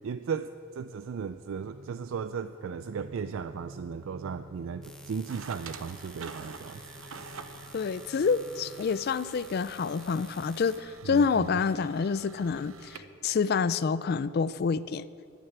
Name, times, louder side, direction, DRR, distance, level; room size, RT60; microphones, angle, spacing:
voice 1, 0.0-6.8 11.1-11.6, right 6 dB, 75° right, 11 dB, 0.4 m, -36 dB
sound 1, 1.4-9.3, right 1 dB, 25° right, 2.4 m, -51 dB
sound 2, 4.8-10.8, left 1 dB, 5° left, 0.8 m, -50 dB
sound 3, 5.3-13.0, right 5 dB, 90° right, 0.8 m, -48 dB
voice 2, 7.7-15.1, left 5 dB, 50° left, 16 dB, 0.3 m, -28 dB
11.0 x 9.1 x 8.0 m, 2.3 s
head